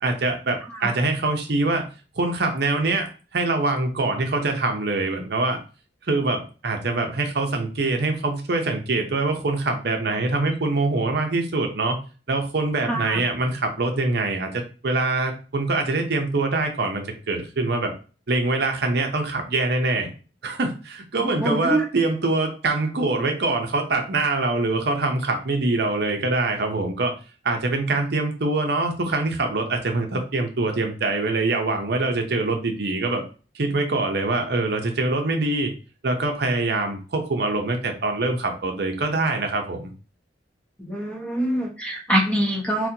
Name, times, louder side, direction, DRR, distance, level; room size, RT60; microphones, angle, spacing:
voice 1, 0.0-1.8 2.2-5.6 6.1-12.0 12.3-17.9 18.3-20.1 20.4-27.1 27.4-33.2 33.5-35.7 36.0-39.9, right 2 dB, 60° right, 4 dB, 0.6 m, -24 dB
voice 2, 12.9-13.2 21.4-21.8 40.8-42.9, right 1 dB, 5° left, -1 dB, 0.8 m, -24 dB
4.1 x 2.1 x 2.7 m, 0.35 s
head